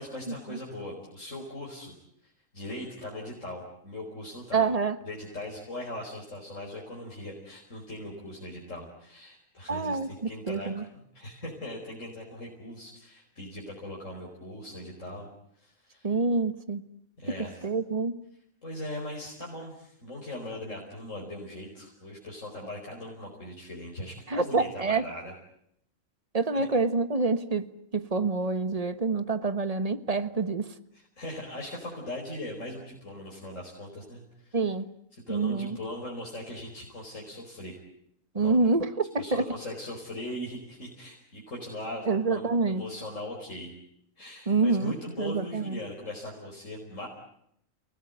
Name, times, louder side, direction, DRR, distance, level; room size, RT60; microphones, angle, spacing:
voice 1, 0.0-2.0 2.2-4.7 5.1-15.3 15.6-16.1 17.2-17.6 18.6-25.3 26.5-26.7 30.9-34.6 35.1-37.8 38.3-38.6 39.2-43.7 44.2-47.1, left 1 dB, 65° left, 5.3 m, -40 dB
voice 2, 4.5-5.0 9.7-10.8 16.0-16.8 17.4-18.2 24.3-25.1 26.3-30.7 34.5-34.9 35.3-35.8 38.3-39.5 42.1-42.8 44.5-45.8, right 3 dB, 30° right, 1.4 m, -27 dB
30.0 x 19.0 x 9.4 m
omnidirectional pair, 1.4 m